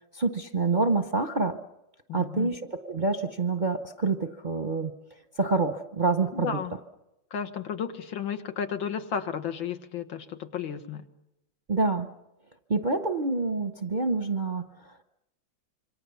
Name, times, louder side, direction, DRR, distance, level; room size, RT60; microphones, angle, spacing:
voice 1, 0.1-1.6 2.1-4.9 5.4-6.6 11.7-12.1 12.7-14.7, right 3 dB, 40° right, 6 dB, 0.7 m, -27 dB
voice 2, 2.1-2.5 6.3-6.7 7.3-11.0, left 7 dB, 85° left, 8 dB, 2.2 m, -33 dB
27.0 x 25.0 x 7.0 m, 0.90 s
omnidirectional pair, 2.1 m